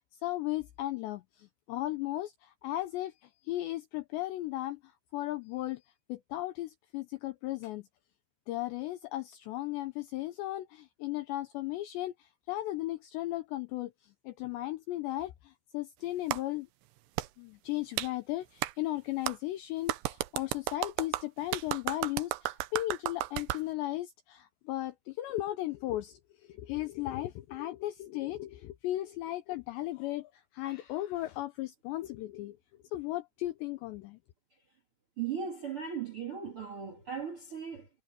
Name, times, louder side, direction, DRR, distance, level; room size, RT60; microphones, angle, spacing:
voice 1, 0.2-5.8 6.1-7.9 8.5-16.7 17.4-32.6 32.9-34.2, left 16 dB, 85° left, 2.5 m, -36 dB
Clapping, 16.3-16.4 17.2-17.3 18.0-18.1 18.6-18.7 19.3-19.4 19.9-23.6, right 16 dB, 90° right, 2.4 m, -33 dB
voice 2, 35.2-37.9, right 7 dB, 55° right, 1.5 m, -37 dB
omnidirectional pair, 5.9 m